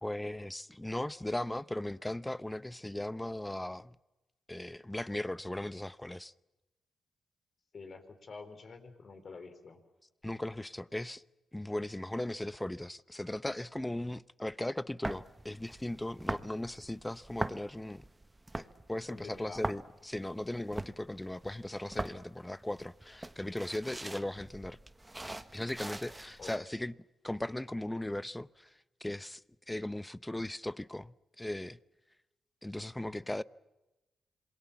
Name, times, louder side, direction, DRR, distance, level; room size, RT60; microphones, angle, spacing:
voice 1, 0.0-4.0 4.5-6.3 10.2-11.2 11.5-18.1 18.6-24.8 25.5-26.9 27.2-28.7 29.0-29.4 29.7-31.8 32.6-33.4, left 1 dB, 10° left, 0.8 m, -38 dB
voice 2, 7.7-9.8 16.3-16.5 19.1-19.6 26.4-26.5 33.0-33.3, left 4 dB, 55° left, 4.2 m, -48 dB
sound 1, 15.0-26.6, right 2 dB, 15° right, 1.4 m, -42 dB
27.0 x 22.5 x 7.2 m
cardioid pair, 65°, 0 cm